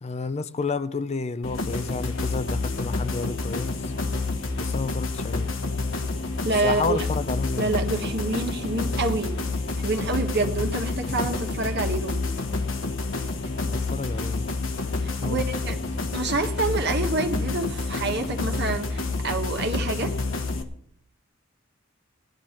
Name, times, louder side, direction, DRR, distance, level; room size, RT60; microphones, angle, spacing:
voice 1, 0.0-3.9 4.6-5.5 6.6-7.7 13.6-14.5 15.2-16.0, left 4 dB, 35° left, 0.5 m, -31 dB
sound 1, 1.4-20.6, left 3 dB, 75° left, 1.2 m, -28 dB
voice 2, 6.4-7.0 7.6-9.3 9.8-12.2 15.0-15.8 16.1-20.1, right 2 dB, 55° right, 1.5 m, -27 dB
16.5 x 10.5 x 4.4 m
head